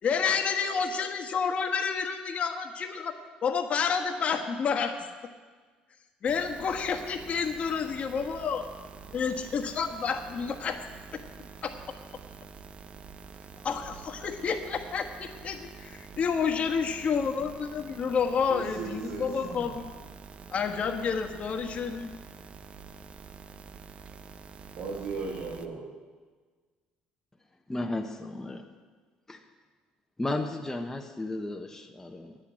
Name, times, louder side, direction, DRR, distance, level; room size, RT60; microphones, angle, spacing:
voice 1, 0.0-3.1 3.4-5.0 6.2-8.6 9.1-10.8 11.1-11.2 11.6-11.7 13.6-19.9 20.5-22.1, left 6 dB, 45° left, 5 dB, 1.3 m, -29 dB
sound 1, 6.3-25.7, right 5 dB, 40° right, 0.7 m, -47 dB
voice 2, 18.5-19.8 24.7-25.9, right 4 dB, 80° right, -3 dB, 2.2 m, -37 dB
voice 3, 27.7-28.7 29.3-29.4 30.2-32.4, left 2 dB, 15° left, 3 dB, 1.0 m, -34 dB
9.9 x 8.4 x 8.8 m, 1.5 s
supercardioid pair, 90°, 3 cm